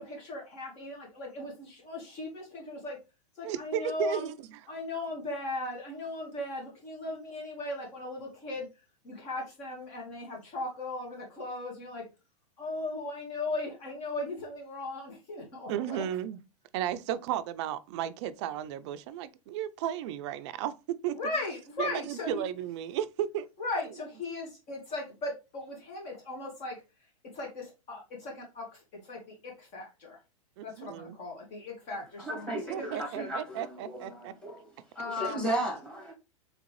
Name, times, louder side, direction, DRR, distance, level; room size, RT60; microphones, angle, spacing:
voice 1, 0.0-3.0 3.4-4.3 4.7-8.7 9.0-12.0 12.6-16.1 21.1-22.4 23.6-26.8 27.3-30.2 30.6-33.3 35.0-35.5, left 2 dB, 40° left, 1.7 m, -37 dB
voice 2, 3.4-4.7 15.7-16.4 16.7-20.7 21.0-21.1 21.8-23.5 30.6-31.2 32.5-34.3 35.3-35.4, right 11 dB, 50° right, 0.5 m, -34 dB
voice 3, 32.2-34.7 35.0-36.1, right 1 dB, 5° left, 1.8 m, -35 dB
3.7 x 3.5 x 3.0 m
hypercardioid pair, 120°, 18 cm